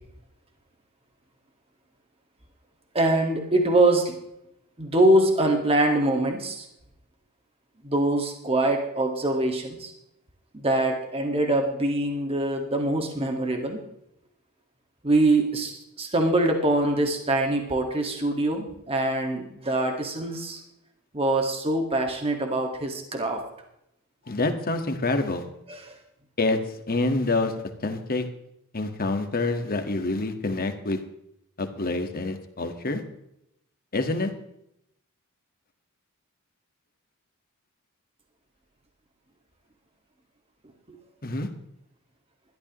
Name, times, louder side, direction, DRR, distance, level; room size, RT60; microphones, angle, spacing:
voice 1, 2.9-4.2 4.8-6.7 7.8-9.9 10.5-13.8 15.0-20.6 21.1-23.4 25.7-26.0, right 2 dB, 25° right, 3 dB, 1.8 m, -24 dB
voice 2, 24.3-25.4 26.4-27.5 27.8-28.3 28.7-31.0 31.6-33.0 33.9-34.3 41.2-41.5, left 2 dB, 40° left, 6 dB, 1.7 m, -27 dB
20.5 x 13.0 x 3.1 m, 0.80 s
head